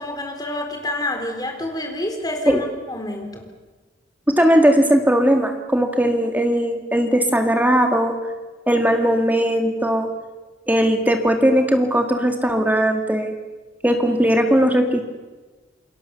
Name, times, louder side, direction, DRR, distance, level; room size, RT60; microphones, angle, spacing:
voice 1, 0.0-3.5, left 1 dB, 20° left, 3 dB, 3.8 m, -28 dB
voice 2, 4.3-8.2 8.7-10.1 10.7-13.3 13.8-15.0, equal, 10° right, 4 dB, 2.1 m, -18 dB
28.5 x 22.0 x 7.1 m, 1.3 s
head